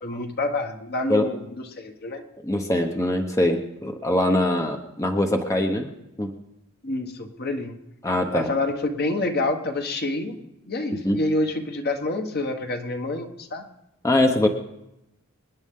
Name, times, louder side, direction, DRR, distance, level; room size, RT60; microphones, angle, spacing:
voice 1, 0.0-2.2 6.8-7.8 8.3-13.6, left 2 dB, 50° left, 5 dB, 1.2 m, -28 dB
voice 2, 2.4-5.9 6.2-6.3 8.0-8.5 11.0-11.2 14.0-14.5, left 1 dB, 15° left, 4 dB, 0.9 m, -22 dB
26.0 x 9.9 x 3.7 m, 0.89 s
head